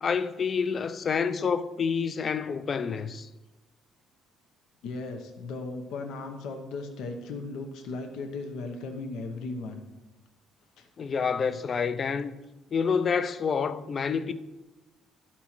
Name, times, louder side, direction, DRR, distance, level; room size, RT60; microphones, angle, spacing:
voice 1, 0.0-3.3 11.0-12.4 12.7-14.3, left 6 dB, 45° left, 0.5 m, -28 dB
voice 2, 4.8-9.8 10.8-10.9, left 3 dB, 80° left, 0.8 m, -36 dB
11.5 x 4.4 x 4.3 m
supercardioid pair, 80°, 0 cm